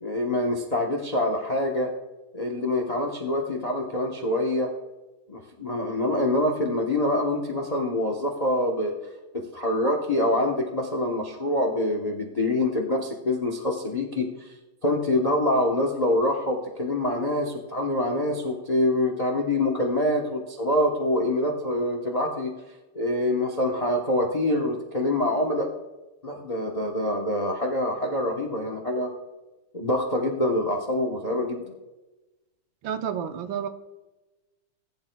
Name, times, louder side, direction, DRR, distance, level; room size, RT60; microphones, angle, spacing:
voice 1, 0.0-1.9 2.3-4.7 5.3-8.9 9.3-14.5 14.8-22.5 22.9-25.7 26.2-29.1 29.7-31.6, left 1 dB, 35° left, 2 dB, 0.6 m, -25 dB
voice 2, 32.8-33.7, right 8 dB, 70° right, 7 dB, 1.4 m, -30 dB
19.5 x 10.5 x 2.3 m, 1.1 s
omnidirectional pair, 2.4 m